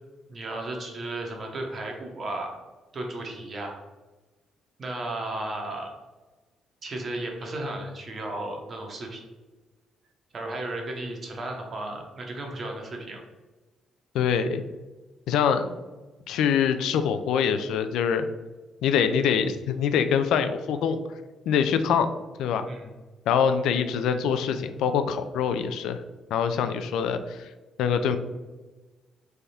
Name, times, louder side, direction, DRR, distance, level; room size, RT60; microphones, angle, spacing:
voice 1, 0.3-2.6 2.9-3.8 4.8-5.9 6.8-9.2 10.3-13.2 22.6-22.9, right 2 dB, 30° right, 1 dB, 0.7 m, -34 dB
voice 2, 14.1-14.6 15.3-15.8 16.3-18.3 18.8-21.0 21.5-22.1 22.4-22.7 23.3-26.0 26.3-27.5 27.8-28.2, left 7 dB, 85° left, 9 dB, 0.4 m, -24 dB
3.5 x 3.4 x 4.1 m, 1.2 s
cardioid pair, 180°, 0 cm